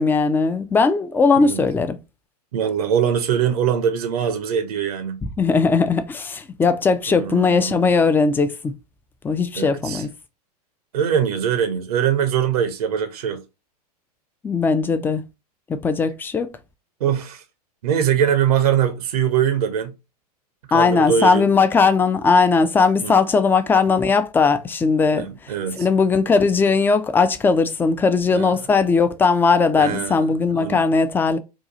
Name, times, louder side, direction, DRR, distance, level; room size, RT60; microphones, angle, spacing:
voice 1, 0.0-2.0 5.4-8.7 9.2-10.1 14.4-15.2 15.7-16.5 20.7-31.4, left 4 dB, 10° left, 0.3 m, -18 dB
voice 2, 2.5-5.2 7.1-7.9 9.5-10.0 10.9-13.4 17.0-17.4 17.8-19.9 20.7-21.5 23.0-23.2 25.1-25.9 28.3-28.5 29.7-30.2 30.6-30.8, right 8 dB, 70° right, 0.7 m, -22 dB
2.8 x 2.3 x 3.8 m
hypercardioid pair, 95°, 20 cm